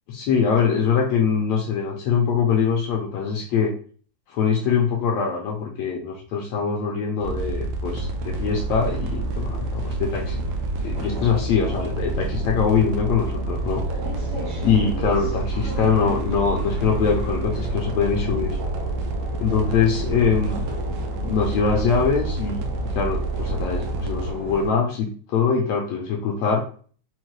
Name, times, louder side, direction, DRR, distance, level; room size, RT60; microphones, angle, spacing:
voice 1, 0.1-3.7 4.3-10.4 10.8-13.8 14.6-18.6 19.4-26.6, left 6 dB, 75° left, 0 dB, 1.7 m, -23 dB
sound 1, 7.2-24.3, right 2 dB, 80° right, 1.6 m, -28 dB
sound 2, 7.9-24.7, right 1 dB, 65° right, 0.7 m, -36 dB
5.3 x 2.1 x 3.0 m, 0.43 s
omnidirectional pair, 3.4 m